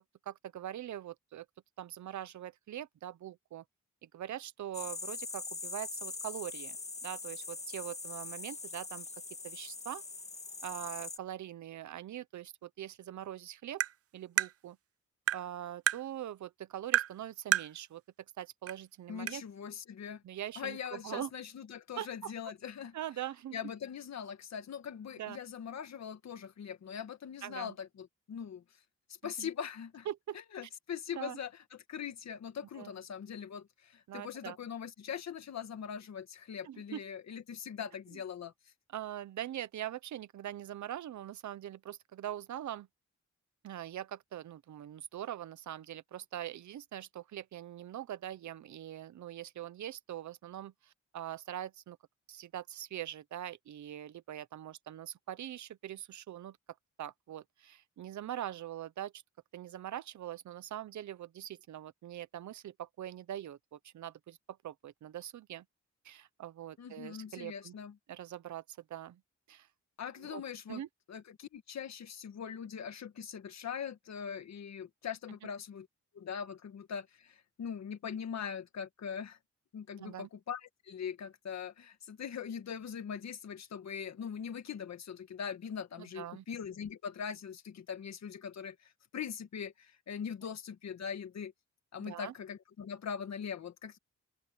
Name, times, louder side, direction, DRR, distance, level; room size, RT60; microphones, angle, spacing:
voice 1, 0.0-1.5 1.8-3.6 4.0-6.8 7.0-9.1 9.4-10.0 10.6-13.8 14.1-14.8 15.3-18.0 18.4-19.4 20.2-21.3 22.0-22.3 22.9-23.6 25.2-25.4 27.4-27.7 29.2-29.5 30.1-30.4 31.1-31.4 32.8-32.9 34.1-34.6 36.6-37.0 38.9-42.9 43.6-52.0 52.3-56.6 57.0-59.2 59.5-65.6 66.0-67.7 68.1-69.2 69.5-69.7 70.2-70.4 70.7-70.9 80.0-80.3 86.0-86.4 92.0-92.3, right 11 dB, 75° right, 0.8 m, -42 dB
sound 1, 4.7-11.2, left 3 dB, 20° left, 1.5 m, -42 dB
Tap, 13.8-13.9 14.4-14.5 15.3-15.4 15.9-16.0 16.9-17.1 17.5-17.7 18.7-18.8 19.3-19.4, right 12 dB, 55° right, 0.5 m, -28 dB
voice 2, 19.1-20.2 20.6-22.9 23.5-28.6 29.2-30.1 30.5-38.5 66.8-67.9 70.0-70.8 71.1-75.9 76.1-79.4 79.7-91.5 91.9-94.0, left 7 dB, 65° left, 1.9 m, -41 dB
open air
wide cardioid pair, 160°, 29 cm